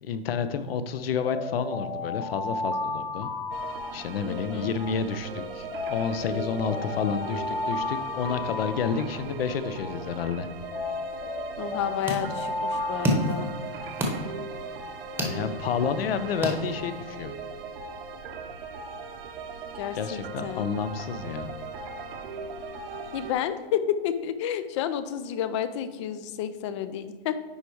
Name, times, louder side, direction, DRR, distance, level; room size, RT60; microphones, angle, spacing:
voice 1, 0.0-3.3 3.9-10.5 15.1-17.4 19.9-21.5, left 6 dB, 65° left, 11 dB, 0.8 m, -30 dB
Alarm, 1.2-4.5 5.7-9.5 10.7-14.0, left 2 dB, 45° left, 1.7 m, -33 dB
sound 1, 3.5-23.3, right 3 dB, 60° right, 0.9 m, -39 dB
voice 2, 4.2-4.7 11.6-13.5 19.7-20.7 23.1-27.4, left 9 dB, 30° left, 12 dB, 0.4 m, -31 dB
sound 2, 11.6-17.2, equal, 5° right, 1.0 m, -32 dB
9.7 x 3.5 x 4.6 m, 1.5 s
hypercardioid pair, 140°, 32 cm